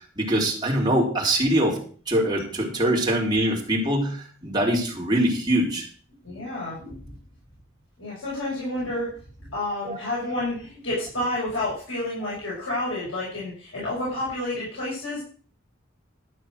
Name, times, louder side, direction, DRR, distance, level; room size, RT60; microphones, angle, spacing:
voice 1, 0.2-5.9 9.8-10.0, right 1 dB, 20° right, -2 dB, 3.4 m, -23 dB
voice 2, 6.2-6.9 8.0-9.1 9.5-15.2, left 1 dB, 80° left, -6 dB, 6.1 m, -30 dB
12.5 x 6.7 x 6.4 m, 0.42 s
head